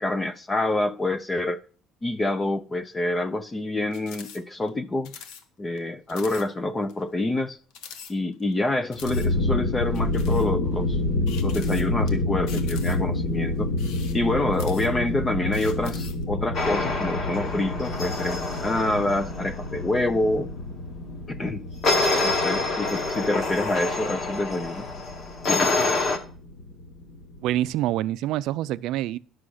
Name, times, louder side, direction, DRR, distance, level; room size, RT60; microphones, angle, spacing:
voice 1, 0.0-1.6 2.0-5.1 5.6-7.6 8.1-11.0 11.4-13.7 14.1-20.5 21.3-21.7 22.2-24.9 25.5-26.0, left 2 dB, 15° left, 0.5 m, -27 dB
sound 1, 3.9-4.4 4.7-4.8 5.0-5.4 5.8-5.9 6.1-6.5 6.9-7.0 7.7-8.5 8.9-9.3 9.9-10.5 11.3-12.1 12.5-13.2 13.7-15.1 15.5-16.2, left 7 dB, 80° left, 1.2 m, -43 dB
sound 2, 8.9-27.8, left 2 dB, 60° left, 3.6 m, -29 dB
sound 3, 16.5-19.7 21.8-26.2, left 3 dB, 35° left, 1.4 m, -27 dB
voice 2, 27.4-29.2, right 14 dB, 65° right, 0.4 m, -26 dB
11.0 x 6.2 x 6.4 m
cardioid pair, 180°, 0 cm